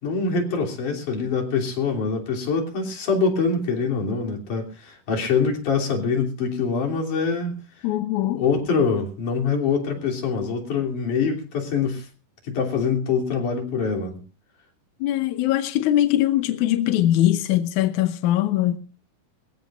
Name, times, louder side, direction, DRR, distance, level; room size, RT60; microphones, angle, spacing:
voice 1, 0.0-7.9 8.3-12.1 12.4-14.2, left 5 dB, 55° left, 4.6 m, -24 dB
voice 2, 7.8-8.4 15.0-18.8, left 13 dB, 75° left, 1.9 m, -21 dB
24.0 x 16.0 x 2.6 m
omnidirectional pair, 4.4 m